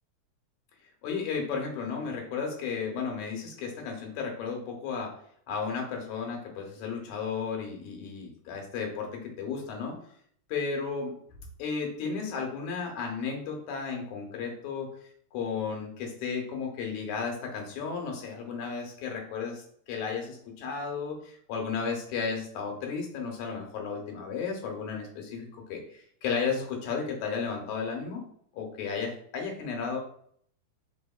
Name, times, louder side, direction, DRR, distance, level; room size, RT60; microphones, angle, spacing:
voice 1, 1.0-5.2 5.5-10.0 10.5-11.1 11.6-14.9 15.3-28.2 28.5-30.0, left 5 dB, 85° left, 2 dB, 2.3 m, -34 dB
4.7 x 3.5 x 2.3 m, 0.62 s
omnidirectional pair, 3.3 m